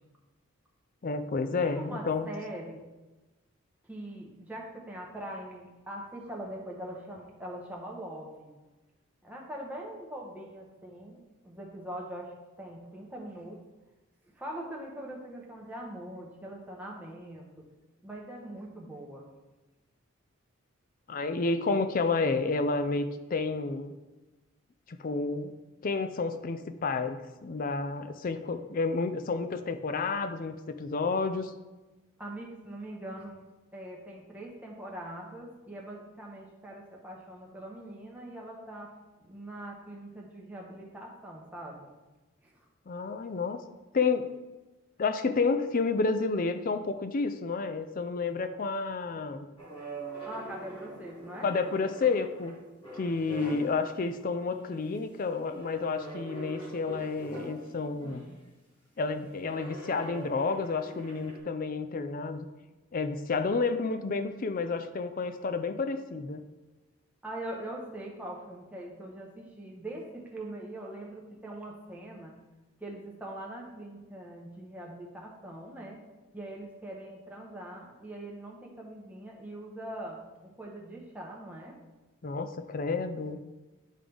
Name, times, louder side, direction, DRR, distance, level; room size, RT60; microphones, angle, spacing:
voice 1, 1.0-2.3 21.1-23.9 24.9-25.5 25.8-31.5 42.9-43.6 43.9-44.3 45.0-49.5 51.4-52.6 52.9-58.3 59.0-62.5 62.9-66.4 82.2-83.4, left 4 dB, 40° left, 10 dB, 0.4 m, -30 dB
voice 2, 1.7-2.8 3.8-8.5 9.2-13.6 14.3-17.5 18.0-19.3 32.2-33.4 33.7-38.9 39.2-41.9 42.4-42.7 50.3-51.5 67.2-72.3 72.8-76.0 76.3-81.8, right 1 dB, 5° right, -3 dB, 1.1 m, -42 dB
sound 1, 49.6-53.9 54.4-54.8 55.5-58.3 59.4-61.4, right 2 dB, 20° left, 1.7 m, -44 dB
10.0 x 3.7 x 3.4 m, 1.1 s
head